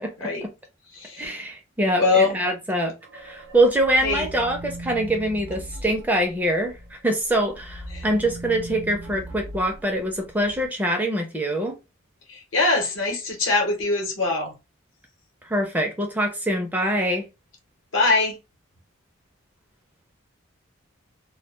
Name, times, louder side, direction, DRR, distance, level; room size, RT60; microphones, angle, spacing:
voice 1, 0.0-0.5 1.2-11.8 15.4-17.3, right 1 dB, 10° right, 0.4 m, -24 dB
voice 2, 0.9-1.3 2.0-2.4 4.0-4.3 7.9-8.0 12.3-14.6 17.9-18.4, left 3 dB, 70° left, 0.9 m, -23 dB
sound 1, 3.0-6.9 7.3-10.7, right 1 dB, 60° right, 0.5 m, -39 dB
2.1 x 2.1 x 3.0 m
head